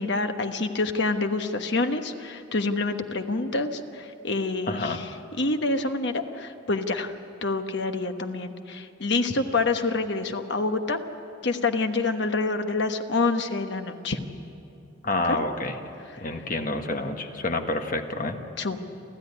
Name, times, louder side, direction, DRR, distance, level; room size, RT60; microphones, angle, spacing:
voice 1, 0.0-5.1 5.4-7.1 7.4-11.0 11.4-14.2 15.1-15.4 16.1-16.2 18.6-18.8, left 3 dB, 60° left, 6 dB, 1.2 m, -27 dB
voice 2, 4.7-5.0 15.0-15.8 16.2-18.4, left 2 dB, 40° left, 5 dB, 1.4 m, -28 dB
29.5 x 13.0 x 9.8 m, 2.8 s
head